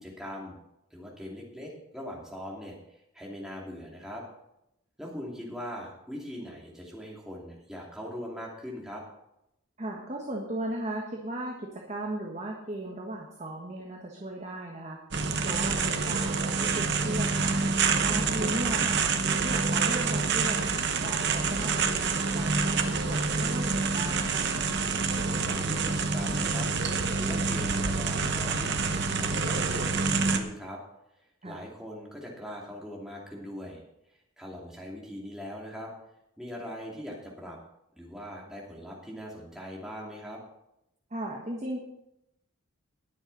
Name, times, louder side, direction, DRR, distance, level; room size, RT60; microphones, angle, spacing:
voice 1, 0.0-0.6 0.9-4.2 5.0-9.0 25.4-26.7 27.1-28.8 29.1-30.8 31.4-33.8 34.1-35.9 36.4-37.6 38.0-40.4, equal, ahead, -3 dB, 2.7 m, -41 dB
voice 2, 9.8-20.7 21.0-24.5 31.4-31.6 41.1-41.8, right 1 dB, 30° right, -1 dB, 1.5 m, -37 dB
sound 1, 15.1-30.4, right 4 dB, 50° right, 1.1 m, -27 dB
20.0 x 7.2 x 4.2 m, 0.83 s
head